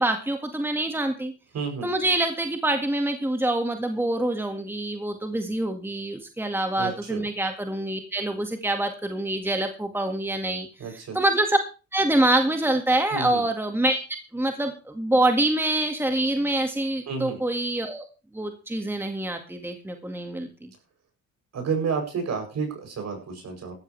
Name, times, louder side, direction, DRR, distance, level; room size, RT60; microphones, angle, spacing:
voice 1, 0.0-1.3 1.8-10.7 11.1-11.6 11.9-14.0 14.3-18.1 18.3-20.7, right 1 dB, 5° right, 5 dB, 1.9 m, -25 dB
voice 2, 1.5-1.9 6.8-7.2 10.8-11.2 13.1-13.4 17.1-17.4 21.5-23.7, right 5 dB, 60° right, 3 dB, 7.8 m, -30 dB
16.5 x 13.5 x 3.4 m, 0.33 s
cardioid pair, 90°, 30 cm